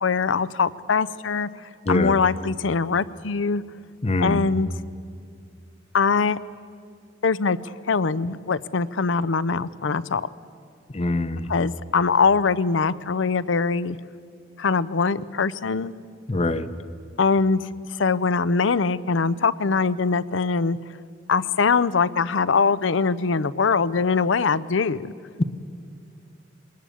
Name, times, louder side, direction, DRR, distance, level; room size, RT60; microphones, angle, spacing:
voice 1, 0.0-1.5 1.9-3.6 4.2-4.7 5.9-6.4 7.2-10.3 11.5-14.0 14.6-15.9 17.2-17.6 18.0-20.8 21.3-25.1, left 5 dB, 80° left, 18 dB, 0.6 m, -22 dB
voice 2, 1.9-2.2 4.0-4.5 10.9-11.5 16.3-16.7, left 2 dB, 35° left, 13 dB, 0.8 m, -24 dB
22.5 x 20.0 x 8.5 m, 2.3 s
head